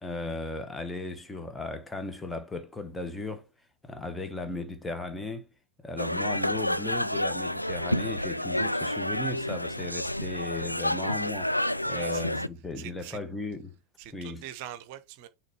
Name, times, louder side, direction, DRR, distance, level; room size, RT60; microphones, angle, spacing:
voice 1, 0.0-3.5 3.8-5.5 5.8-11.6 11.9-13.8 14.1-14.4, left 2 dB, 10° left, 1.0 m, -36 dB
sound 1, 6.0-12.5, left 1 dB, 90° left, 0.3 m, -29 dB
voice 2, 11.8-12.4 12.8-13.2 14.0-15.3, right 11 dB, 45° right, 0.8 m, -43 dB
6.4 x 3.2 x 4.7 m
figure-of-eight pair, 90°, 0 cm